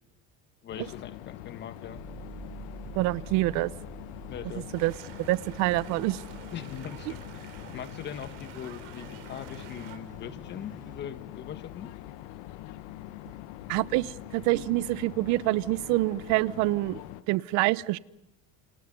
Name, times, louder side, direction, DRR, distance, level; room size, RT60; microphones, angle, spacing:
voice 1, 0.6-2.0 4.3-4.7 6.5-11.9, left 9 dB, 35° left, 12 dB, 1.6 m, -41 dB
sound 1, 0.7-17.2, left 14 dB, 85° left, 1.5 m, -44 dB
sound 2, 1.8-11.0, right 4 dB, 25° right, 6.9 m, -48 dB
voice 2, 2.9-3.7 4.7-4.9 5.3-6.2 13.7-17.0 17.3-18.0, right 19 dB, 65° right, 19 dB, 0.9 m, -26 dB
sound 3, 4.7-10.0, right 11 dB, 85° right, 4.2 m, -49 dB
28.5 x 28.0 x 5.4 m, 0.83 s
cardioid pair, 160°, 30 cm